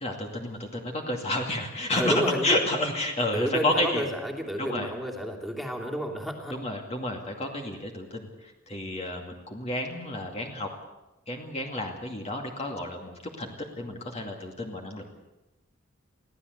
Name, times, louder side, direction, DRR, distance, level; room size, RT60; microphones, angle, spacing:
voice 1, 0.0-4.1 4.6-4.9 6.5-8.3 8.7-10.7 11.3-15.1, left 1 dB, 30° left, 2 dB, 2.4 m, -30 dB
voice 2, 1.9-2.6 3.3-6.5, equal, ahead, -1 dB, 2.9 m, -30 dB
24.0 x 16.0 x 8.1 m, 0.97 s
head